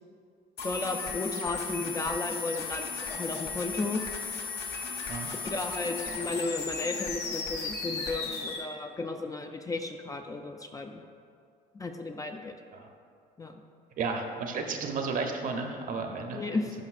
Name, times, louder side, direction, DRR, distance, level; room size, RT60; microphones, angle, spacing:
sound 1, 0.6-8.6, left 4 dB, 75° left, 1.2 m, -35 dB
voice 1, 0.6-4.0 5.4-11.0 11.7-12.5 13.4-13.5 16.3-16.7, left 3 dB, 20° left, 5 dB, 0.4 m, -34 dB
voice 2, 14.0-16.4, right 4 dB, 55° right, 3 dB, 0.8 m, -33 dB
11.5 x 5.2 x 2.5 m, 2.3 s
cardioid pair, 110°, 17 cm